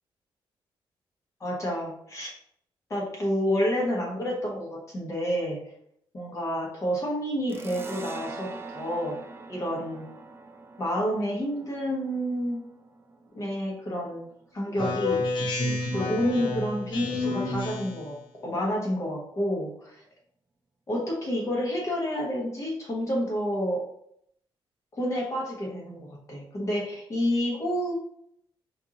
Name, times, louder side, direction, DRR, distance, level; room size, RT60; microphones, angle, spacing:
voice 1, 1.4-2.3 2.9-5.6 6.1-9.2 9.5-10.1 10.8-12.6 13.4-14.3 14.5-15.2 15.9-18.2 18.4-20.0 20.9-23.8 24.9-27.9, equal, 35° left, -3 dB, 1.2 m, -29 dB
sound 1, 7.5-14.7, right 3 dB, 25° right, 0.3 m, -43 dB
Speech synthesizer, 14.8-18.1, left 2 dB, 55° left, 1.0 m, -29 dB
4.6 x 2.6 x 2.8 m, 0.71 s
wide cardioid pair, 145°, 9 cm